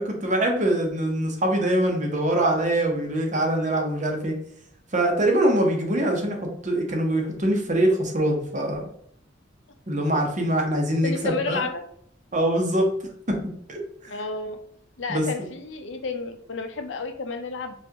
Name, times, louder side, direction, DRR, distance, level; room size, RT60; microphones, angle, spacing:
voice 1, 0.0-4.3 4.9-6.4 6.6-8.9 9.9-11.7 12.3-12.9 13.3-13.4 13.7-13.8 15.1-15.3, right 1 dB, 40° right, 2 dB, 0.9 m, -23 dB
voice 2, 11.0-11.8 14.1-14.6 15.0-17.7, left 4 dB, 70° left, 7 dB, 0.5 m, -31 dB
5.7 x 2.5 x 2.8 m, 0.67 s
head